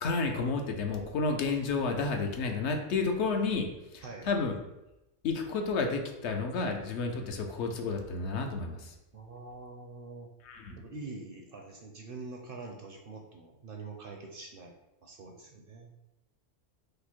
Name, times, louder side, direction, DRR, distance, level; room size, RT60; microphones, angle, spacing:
voice 1, 0.0-3.7 3.9-4.5 5.2-8.9 10.4-10.8, left 4 dB, 70° left, 3 dB, 0.9 m, -31 dB
voice 2, 9.1-10.3 10.8-14.7 15.0-15.9, right 3 dB, 55° right, 1 dB, 0.7 m, -45 dB
4.9 x 2.0 x 4.3 m, 0.92 s
omnidirectional pair, 1.3 m